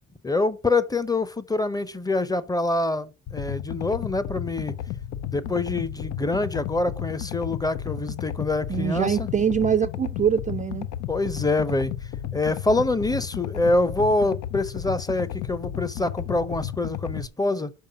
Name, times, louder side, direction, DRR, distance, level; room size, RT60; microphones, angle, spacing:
voice 1, 0.2-4.8 5.3-9.3 11.1-11.9 12.3-17.7, left 2 dB, 15° left, 0.6 m, -25 dB
sound 1, 3.3-17.3, left 11 dB, 85° left, 0.6 m, -33 dB
voice 2, 8.7-10.9, right 7 dB, 25° right, 0.4 m, -23 dB
5.5 x 4.6 x 5.5 m
cardioid pair, 90°, 30 cm